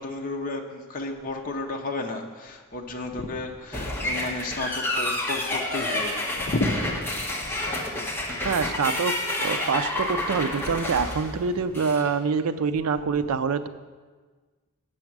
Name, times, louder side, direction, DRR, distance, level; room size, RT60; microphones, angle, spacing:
voice 1, 0.0-7.0 7.4-7.5 8.1-8.2, left 2 dB, 40° left, 1 dB, 0.7 m, -32 dB
sound 1, 3.7-12.1, left 1 dB, 10° left, 1.1 m, -29 dB
voice 2, 8.4-13.7, right 5 dB, 75° right, 12 dB, 0.4 m, -26 dB
8.0 x 6.3 x 5.9 m, 1.4 s
head